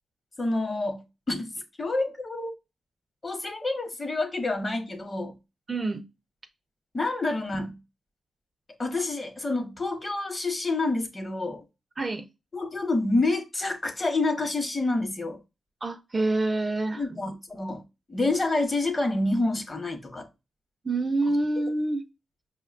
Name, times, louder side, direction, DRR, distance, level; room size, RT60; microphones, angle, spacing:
voice 1, 0.4-1.5 1.8-2.5 3.2-5.4 6.9-7.8 8.8-11.6 12.5-15.4 17.0-17.8 18.1-20.3, left 2 dB, 30° left, 0.8 m, -28 dB
voice 2, 5.7-6.0 12.0-12.3 15.8-17.2 20.8-22.0, right 2 dB, 30° right, 0.4 m, -27 dB
5.4 x 2.1 x 2.4 m
cardioid pair, 90°, 0 cm